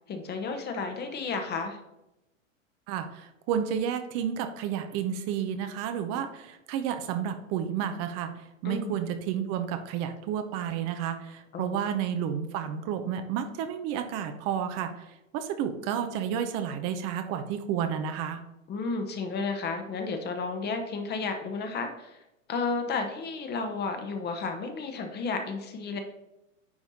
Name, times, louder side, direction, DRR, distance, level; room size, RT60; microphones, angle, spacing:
voice 1, 0.1-1.8 8.6-9.0 11.5-11.8 18.7-22.2 22.5-26.0, left 4 dB, 25° left, 6 dB, 1.0 m, -32 dB
voice 2, 2.9-18.4, right 8 dB, 40° right, 7 dB, 0.8 m, -31 dB
9.5 x 3.5 x 4.1 m, 0.90 s
hypercardioid pair, 110°, 40 cm